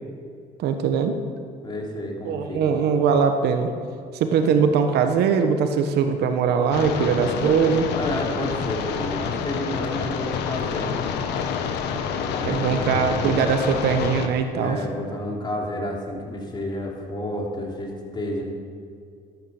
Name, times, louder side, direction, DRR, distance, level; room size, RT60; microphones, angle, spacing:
voice 1, 0.6-1.2 2.2-3.7 4.2-7.9 12.4-14.8, right 6 dB, 75° right, 7 dB, 1.2 m, -21 dB
voice 2, 1.6-2.8 7.9-11.1 12.3-13.0 14.5-18.4, left 1 dB, 25° left, -1 dB, 3.2 m, -31 dB
sound 1, 6.7-14.3, left 7 dB, 85° left, 1.2 m, -28 dB
12.5 x 9.8 x 7.2 m, 2.3 s
cardioid pair, 110°, 17 cm